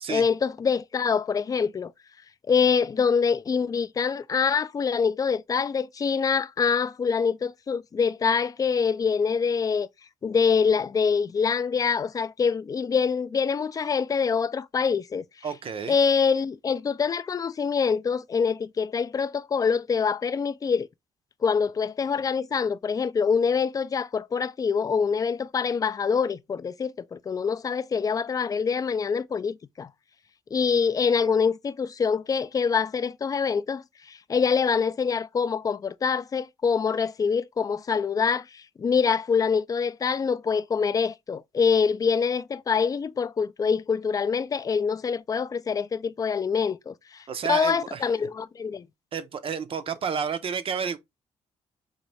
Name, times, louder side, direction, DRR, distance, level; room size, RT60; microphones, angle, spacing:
voice 1, 0.1-1.9 2.5-9.9 10.2-15.2 15.9-20.9 21.4-29.9 30.5-48.9, left 6 dB, 30° left, 0.3 m, -25 dB
voice 2, 15.4-16.0 47.3-48.1 49.1-51.0, right 6 dB, 50° right, 0.6 m, -30 dB
4.0 x 2.6 x 3.2 m
cardioid pair, 90°, 12 cm